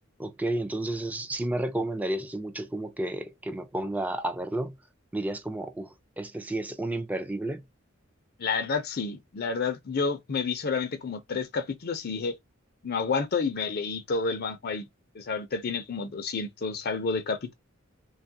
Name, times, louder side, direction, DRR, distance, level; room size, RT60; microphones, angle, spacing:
voice 1, 0.2-4.7 5.1-7.6, right 1 dB, 10° right, 0.4 m, -31 dB
voice 2, 8.4-12.4 12.8-14.9 15.1-17.5, left 4 dB, 50° left, 0.5 m, -30 dB
3.1 x 2.3 x 2.7 m
head